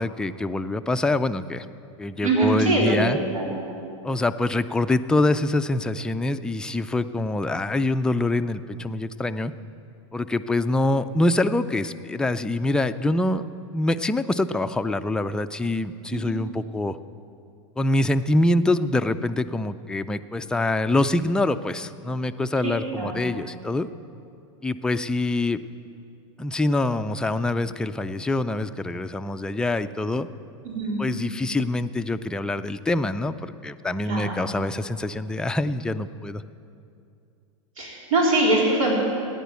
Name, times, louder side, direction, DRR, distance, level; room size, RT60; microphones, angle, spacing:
voice 1, 0.0-1.7 2.0-3.2 4.0-9.5 10.1-13.5 13.7-17.0 17.8-23.9 24.6-25.6 26.4-30.3 31.0-36.4, left 2 dB, 5° left, 9 dB, 0.3 m, -25 dB
voice 2, 2.2-3.6 16.1-16.2 22.6-23.1 30.6-31.0 34.0-34.4 37.8-39.0, right 2 dB, 90° right, -3 dB, 3.9 m, -23 dB
15.0 x 10.0 x 8.3 m, 2.5 s
supercardioid pair, 130°, 17 cm